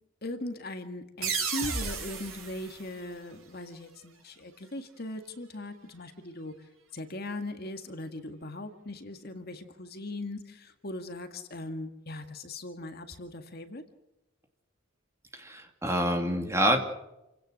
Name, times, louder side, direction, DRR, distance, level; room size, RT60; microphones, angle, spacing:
voice 1, 0.2-6.5 6.9-13.8, left 2 dB, 45° left, 7 dB, 1.9 m, -39 dB
sound 1, 1.2-3.8, right 7 dB, 70° right, 6.6 m, -35 dB
sound 2, 1.6-3.3, equal, 35° right, 2.2 m, -41 dB
voice 2, 15.3-16.8, right 1 dB, 15° right, 4 dB, 2.7 m, -27 dB
29.0 x 17.0 x 6.5 m, 0.94 s
head